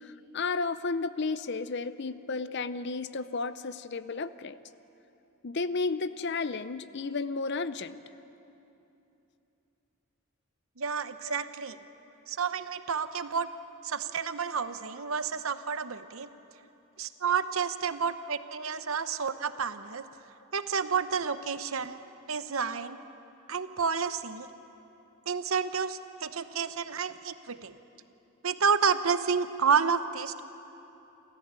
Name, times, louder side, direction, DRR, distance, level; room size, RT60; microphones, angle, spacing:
voice 1, 0.0-4.6 5.4-8.0, left 4 dB, 50° left, 14 dB, 0.6 m, -33 dB
voice 2, 10.8-11.8 12.3-13.5 13.8-16.3 17.0-20.0 20.5-22.0 22.3-23.0 23.5-24.5 25.3-27.7 28.4-30.4, right 6 dB, 65° right, 11 dB, 0.8 m, -30 dB
28.0 x 14.0 x 8.9 m, 2.9 s
head